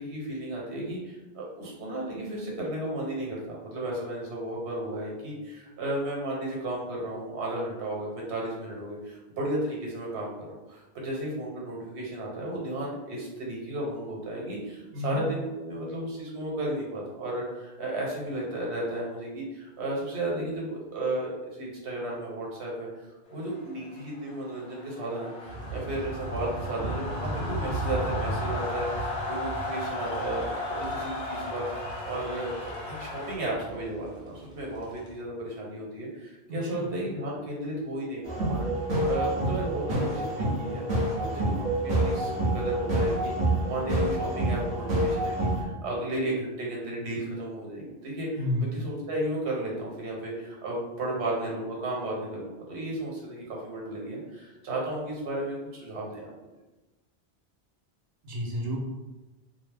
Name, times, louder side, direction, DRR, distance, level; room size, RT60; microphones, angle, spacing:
voice 1, 0.0-38.7 39.0-40.8 41.2-43.3 43.7-56.3, right 1 dB, 90° right, -3 dB, 1.1 m, -34 dB
sound 1, 23.5-33.4, left 2 dB, 40° left, 0.6 m, -36 dB
sound 2, 25.5-35.1, right 2 dB, 5° right, 0.5 m, -37 dB
voice 2, 36.5-36.9 48.4-48.7 58.2-58.8, left 1 dB, 70° right, -1 dB, 0.9 m, -30 dB
sound 3, 38.2-45.6, right 1 dB, 50° right, 0.8 m, -27 dB
2.7 x 2.0 x 3.3 m, 1.1 s
omnidirectional pair, 1.1 m